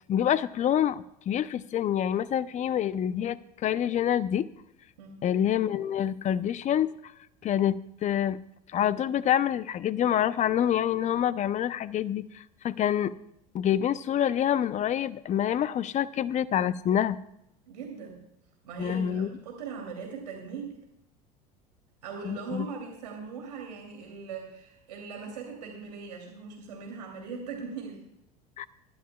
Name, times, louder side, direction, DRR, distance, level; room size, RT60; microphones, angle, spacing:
voice 1, 0.1-4.5 5.2-6.9 7.4-8.4 8.7-13.1 13.5-17.2 18.8-19.3 22.3-22.7 28.6-28.7, left 10 dB, 35° left, 16 dB, 0.6 m, -27 dB
voice 2, 17.7-18.2 18.6-20.7 22.0-28.0, right 5 dB, 85° right, 1 dB, 2.9 m, -40 dB
23.5 x 12.0 x 2.3 m, 0.80 s
hypercardioid pair, 80°, 20 cm